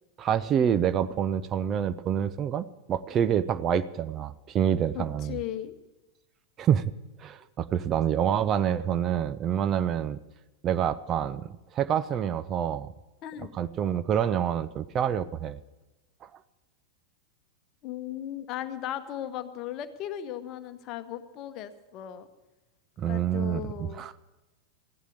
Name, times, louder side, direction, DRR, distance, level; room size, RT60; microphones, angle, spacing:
voice 1, 0.2-5.4 6.6-6.9 7.2-10.2 10.6-12.9 13.6-15.6 16.2-16.3 23.0-24.1, right 9 dB, 30° right, 14 dB, 0.5 m, -27 dB
voice 2, 4.9-5.7 13.2-13.5 17.8-22.3 23.1-24.0, left 11 dB, 40° left, 11 dB, 1.0 m, -37 dB
15.0 x 11.0 x 6.6 m, 1.0 s
figure-of-eight pair, 90°, 0 cm